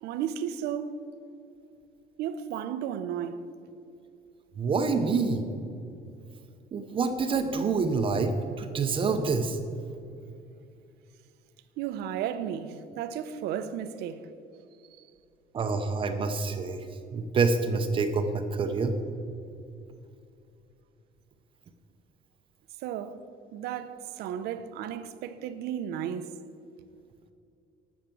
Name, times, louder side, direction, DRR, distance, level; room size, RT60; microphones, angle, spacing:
voice 1, 0.0-1.0 2.2-3.4 11.8-14.2 22.8-23.2 23.5-26.3, right 9 dB, 75° right, 0.8 m, -34 dB
voice 2, 4.6-5.4 6.7-9.6 15.5-16.9 17.1-18.9, right 4 dB, 30° right, 0.7 m, -27 dB
12.0 x 7.3 x 7.5 m
cardioid pair, 165°, 17 cm